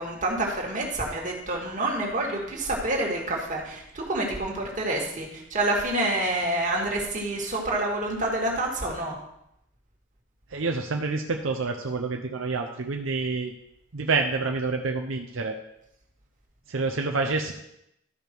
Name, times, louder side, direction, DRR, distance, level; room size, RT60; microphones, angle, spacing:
voice 1, 0.0-9.1, right 1 dB, 40° right, -1 dB, 2.0 m, -28 dB
voice 2, 10.5-13.5 13.9-15.6 16.7-17.5, right 3 dB, 85° right, 3 dB, 0.8 m, -28 dB
12.5 x 5.2 x 4.6 m, 0.79 s
head